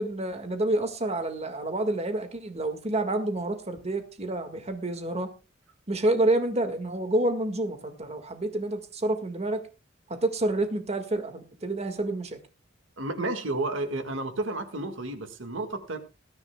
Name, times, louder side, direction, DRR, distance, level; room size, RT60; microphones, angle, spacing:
voice 1, 0.0-5.3 5.9-9.6 10.1-12.4, right 2 dB, 35° right, 7 dB, 1.8 m, -28 dB
voice 2, 13.0-16.0, right 2 dB, 70° right, 8 dB, 1.8 m, -31 dB
19.5 x 14.0 x 2.3 m, 0.30 s
head